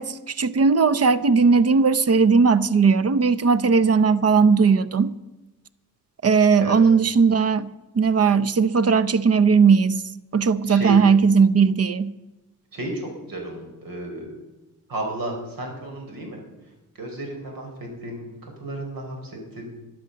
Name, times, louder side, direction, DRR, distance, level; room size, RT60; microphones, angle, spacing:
voice 1, 0.0-5.1 6.2-10.0 10.3-12.1, right 5 dB, 45° right, 0.7 m, -18 dB
voice 2, 12.7-14.3 14.9-16.4 17.0-19.7, right 1 dB, 80° right, 4.6 m, -33 dB
12.5 x 11.5 x 6.7 m
cardioid pair, 95°, 34 cm